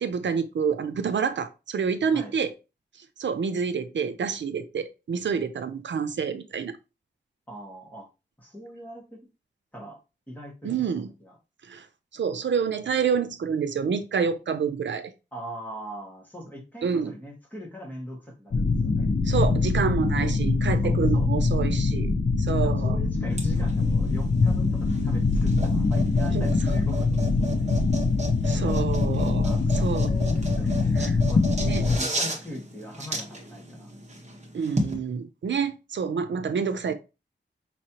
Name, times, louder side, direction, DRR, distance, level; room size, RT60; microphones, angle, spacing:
voice 1, 0.0-2.5 3.2-6.7 10.6-11.1 11.7-11.8 12.1-15.1 16.8-17.1 19.3-22.1 22.5-23.0 26.3-26.5 28.4-29.5 29.8-30.1 31.0-31.2 31.6-31.8 34.5-36.9, right 6 dB, 85° right, 0.6 m, -28 dB
voice 2, 7.5-8.1 8.4-9.2 9.7-10.0 10.3-11.4 15.3-19.2 20.2-20.3 20.8-21.3 22.6-27.7 28.4-28.9 29.4-31.0 31.2-33.9, equal, 10° left, 1.7 m, -41 dB
sound 1, 18.5-32.0, left 3 dB, 55° left, 0.7 m, -23 dB
sound 2, 23.3-34.9, right 2 dB, 40° right, 1.2 m, -35 dB
5.5 x 3.2 x 2.9 m
wide cardioid pair, 125°, 19 cm